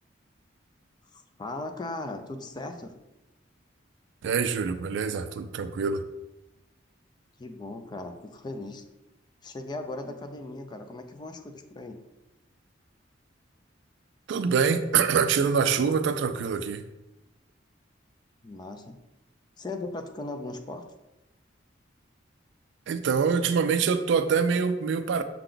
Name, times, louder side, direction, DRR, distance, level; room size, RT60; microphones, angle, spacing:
voice 1, 1.1-2.9 7.4-8.8 9.4-12.0 18.4-19.0 19.6-20.8, left 2 dB, 25° left, 6 dB, 0.4 m, -38 dB
voice 2, 4.2-6.0 14.3-16.8 22.9-25.2, right 6 dB, 70° right, 11 dB, 0.3 m, -25 dB
5.8 x 2.2 x 3.8 m, 0.97 s
head